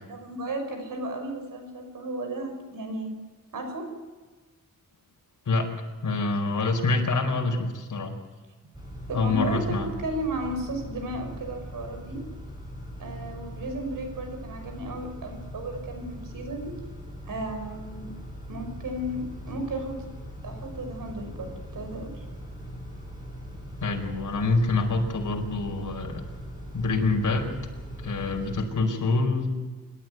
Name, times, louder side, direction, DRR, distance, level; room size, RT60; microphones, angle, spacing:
voice 1, 0.0-3.1 3.5-3.9 9.1-12.2 13.0-16.7 17.3-18.1 18.5-20.0 20.4-22.2, right 1 dB, 75° right, 5 dB, 5.8 m, -34 dB
voice 2, 5.5-5.8 6.0-8.1 9.1-9.9 23.8-26.2 26.7-27.6 28.0-29.5, left 3 dB, 65° left, 3 dB, 4.6 m, -26 dB
Car / Idling / Accelerating revving vroom, 8.7-28.6, equal, 10° right, 7.7 m, -40 dB
26.5 x 13.0 x 9.5 m, 1.4 s
wide cardioid pair, 125°, 33 cm